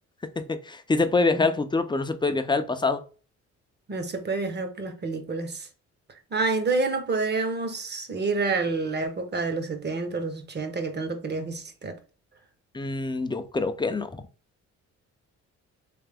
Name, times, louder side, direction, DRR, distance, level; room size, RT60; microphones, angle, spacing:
voice 1, 0.4-3.0 12.7-14.2, left 3 dB, 15° left, 0.5 m, -25 dB
voice 2, 3.9-5.7 6.1-12.0, right 3 dB, 35° right, 1.0 m, -28 dB
3.4 x 3.2 x 3.4 m
cardioid pair, 90°, 30 cm